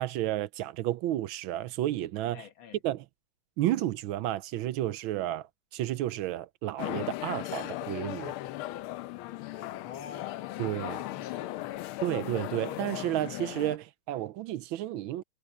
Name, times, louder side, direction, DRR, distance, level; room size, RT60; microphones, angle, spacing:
voice 1, 0.0-2.4 2.8-3.0 3.6-5.5 5.7-8.3 10.6-11.0 12.0-15.2, right 14 dB, 80° right, 1.4 m, -31 dB
voice 2, 2.3-2.8 9.5-12.1, left 9 dB, 70° left, 2.3 m, -47 dB
sound 1, 6.8-13.8, left 16 dB, 90° left, 1.5 m, -37 dB
omnidirectional pair, 2.3 m